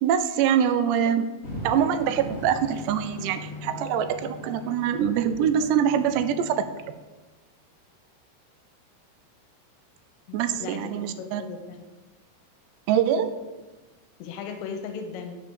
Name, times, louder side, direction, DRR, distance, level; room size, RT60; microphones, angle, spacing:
voice 1, 0.0-1.3 1.6-6.9 10.3-11.4 12.9-13.3, right 8 dB, 80° right, 11 dB, 2.6 m, -24 dB
sound 1, 1.4-7.1, left 1 dB, 40° left, 0.9 m, -39 dB
voice 2, 10.3-11.8 14.2-15.4, left 6 dB, 80° left, 5 dB, 2.8 m, -37 dB
9.5 x 4.9 x 6.9 m, 1.2 s
omnidirectional pair, 5.2 m